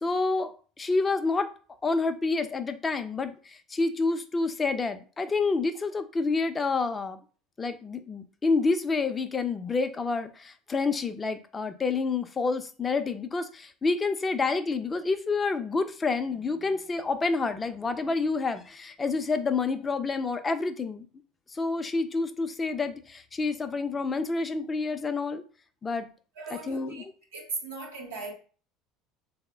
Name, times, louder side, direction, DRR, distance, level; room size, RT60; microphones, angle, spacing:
voice 1, 0.0-1.5 1.8-7.2 7.6-21.0 21.5-25.4 25.8-26.1 26.5-27.0, left 4 dB, 25° left, 0.5 m, -28 dB
voice 2, 26.4-27.0 27.3-28.3, right 4 dB, 90° right, 0.7 m, -37 dB
3.4 x 2.1 x 3.3 m
hypercardioid pair, 75°, 0 cm